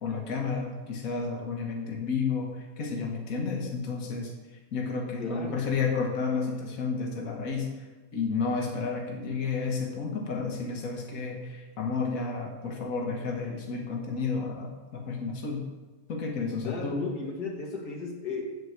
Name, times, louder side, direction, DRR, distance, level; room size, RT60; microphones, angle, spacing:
voice 1, 0.0-4.3 4.7-7.9 8.1-15.6 16.1-17.0, left 4 dB, 65° left, 0 dB, 1.8 m, -31 dB
voice 2, 5.2-5.7 16.7-18.5, left 4 dB, 90° left, 0 dB, 2.2 m, -35 dB
8.0 x 6.4 x 8.0 m, 1.2 s
omnidirectional pair, 1.6 m